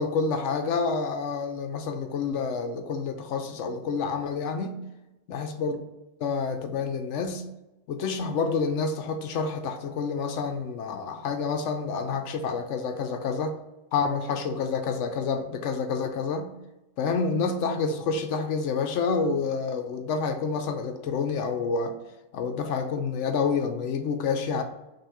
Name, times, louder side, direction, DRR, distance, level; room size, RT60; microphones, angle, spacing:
voice 1, 0.0-4.8 5.3-5.8 6.2-7.4 7.9-13.6 13.9-16.5 17.0-22.0 22.3-24.6, left 5 dB, 65° left, 6 dB, 0.8 m, -28 dB
5.6 x 2.7 x 3.5 m, 1.0 s
omnidirectional pair, 1.6 m